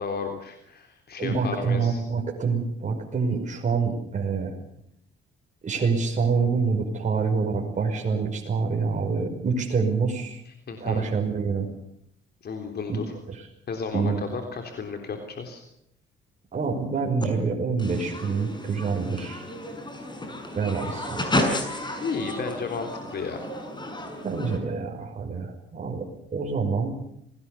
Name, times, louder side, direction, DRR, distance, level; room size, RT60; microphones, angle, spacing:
voice 1, 0.0-2.0 10.5-11.0 12.4-13.0 13.7-15.6 22.0-23.4, left 5 dB, 55° left, 4 dB, 3.6 m, -33 dB
voice 2, 1.2-4.5 5.6-10.4 10.8-11.7 12.9-13.0 13.3-13.4 13.9-14.2 16.5-19.4 20.5-21.2 24.2-26.1 26.3-27.0, right 5 dB, 40° right, 1 dB, 5.7 m, -26 dB
sound 1, 17.2-17.3 17.8-24.6, left 1 dB, 20° left, 6.5 m, -32 dB
27.0 x 19.5 x 7.0 m, 0.75 s
cardioid pair, 90°, 20 cm